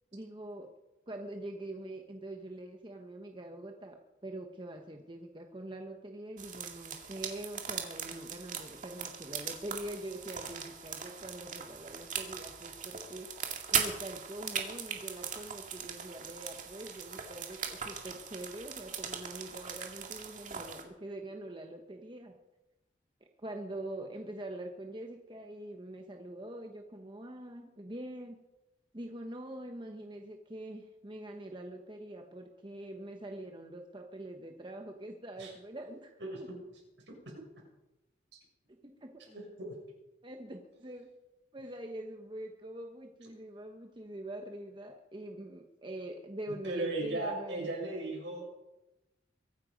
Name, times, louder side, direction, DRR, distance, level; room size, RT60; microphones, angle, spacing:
voice 1, 0.1-0.7 1.1-13.3 13.7-22.3 23.4-28.4 28.9-36.5 38.8-39.1 40.2-41.1 41.5-47.7, right 1 dB, 25° right, 3 dB, 1.1 m, -44 dB
sound 1, 6.4-20.8, right 7 dB, 40° right, 2.2 m, -39 dB
voice 2, 39.3-39.7 46.6-48.6, right 2 dB, 70° right, -1 dB, 6.9 m, -36 dB
23.5 x 10.0 x 5.3 m, 0.98 s
head